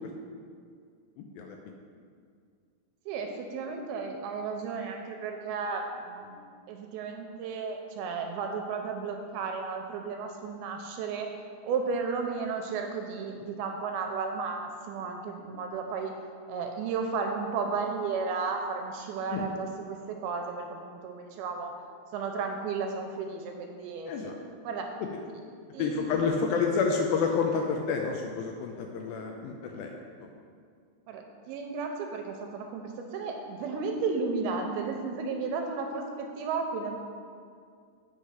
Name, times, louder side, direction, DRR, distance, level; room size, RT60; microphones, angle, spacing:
voice 1, 1.2-1.6 19.3-19.5 24.1-24.3 25.8-30.0, left 5 dB, 85° left, 2 dB, 2.1 m, -29 dB
voice 2, 3.1-6.4 6.7-11.3 11.6-16.1 16.5-21.7 22.1-24.3 24.6-24.9 25.7-26.2 31.1-37.0, right 4 dB, 85° right, 3 dB, 2.4 m, -33 dB
8.3 x 4.8 x 5.5 m, 2.2 s
omnidirectional pair, 4.7 m